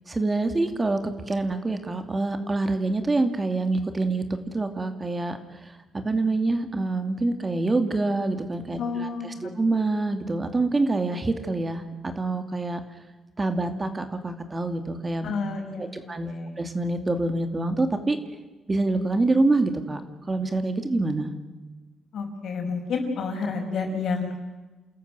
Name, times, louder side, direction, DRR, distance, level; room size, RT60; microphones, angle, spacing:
voice 1, 0.1-1.0 1.3-4.2 4.5-12.8 13.4-15.3 15.8-18.2 18.7-20.0 20.3-21.3, right 2 dB, 25° right, 7 dB, 2.5 m, -26 dB
voice 2, 8.8-9.6 15.2-16.5 22.1-24.4, left 4 dB, 65° left, 4 dB, 5.5 m, -30 dB
29.0 x 14.0 x 9.2 m, 1.2 s
cardioid pair, 90°, 0 cm